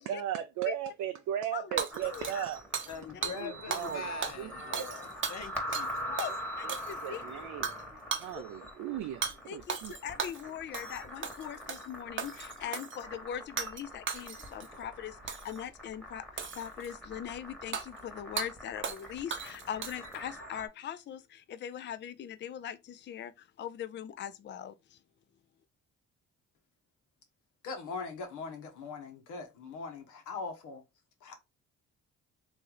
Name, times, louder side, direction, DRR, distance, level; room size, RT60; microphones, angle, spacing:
voice 1, 0.0-2.6 3.3-4.1 4.4-4.9 6.6-6.8 7.0-7.7 8.2-9.9, right 10 dB, 80° right, 0.5 m, -36 dB
voice 2, 1.5-2.4 3.2-3.9 6.1-6.3 6.6-7.2 8.3-8.4 9.5-23.3 23.6-24.7, left 9 dB, 40° left, 0.4 m, -41 dB
Hammer / Shatter, 1.8-3.0 3.2-3.4 3.7-4.0 4.2-5.9 6.2-6.3 6.7-7.2 7.6-7.8 8.1-8.3 9.2-9.4 9.7-10.4 10.7-11.0 11.2-11.9 12.2-13.0 13.6-13.8 14.1-14.7 15.3-15.6 16.4-16.9 17.7-17.9 18.4-18.5 18.8-19.0 19.3-20.2, right 6 dB, 40° right, 0.7 m, -36 dB
sound 1, 1.9-20.7, equal, 5° left, 1.2 m, -43 dB
voice 3, 2.9-6.2, left 7 dB, 60° left, 0.9 m, -44 dB
voice 4, 27.6-30.8 31.2-31.3, left 4 dB, 85° left, 1.2 m, -41 dB
3.1 x 2.6 x 3.8 m
cardioid pair, 90°, 30 cm